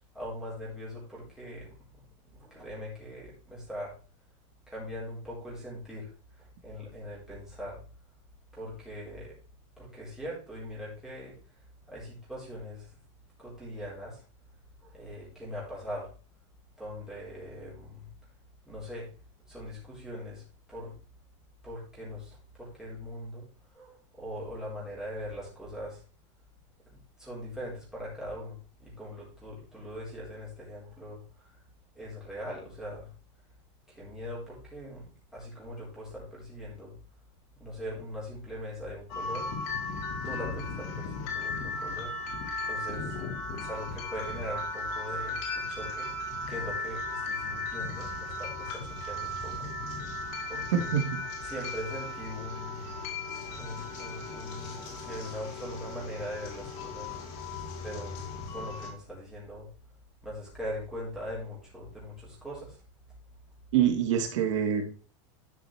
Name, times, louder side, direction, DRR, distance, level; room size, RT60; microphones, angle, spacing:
voice 1, 0.1-3.9 4.7-6.1 6.4-7.8 8.5-9.3 9.8-11.4 11.9-12.9 13.4-14.2 14.8-16.1 16.8-18.1 18.7-19.1 19.5-20.4 20.7-21.0 21.6-23.5 23.7-26.0 26.9-31.5 31.9-33.1 33.9-35.0 35.3-36.9 37.6-39.5 40.2-42.2 42.6-43.2 43.6-46.2 46.5-49.7 50.5-51.0 51.5-52.8 53.6-57.1 57.8-59.7 60.2-62.8, equal, 5° right, -6 dB, 4.3 m, -41 dB
sound 1, 39.1-58.9, left 2 dB, 45° left, 2.4 m, -36 dB
voice 2, 50.7-51.2 63.7-65.1, right 9 dB, 80° right, 4 dB, 1.9 m, -26 dB
11.5 x 6.1 x 3.4 m, 0.36 s
supercardioid pair, 175°, 16 cm